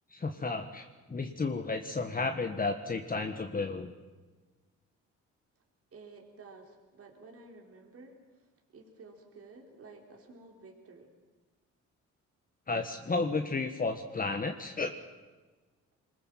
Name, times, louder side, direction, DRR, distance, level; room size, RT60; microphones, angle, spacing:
voice 1, 0.1-3.9 12.7-14.9, left 3 dB, 30° left, 5 dB, 1.6 m, -32 dB
voice 2, 5.9-11.1, right 3 dB, 50° right, 1 dB, 4.0 m, -53 dB
24.5 x 20.5 x 7.6 m, 1.3 s
cardioid pair, 90°, 30 cm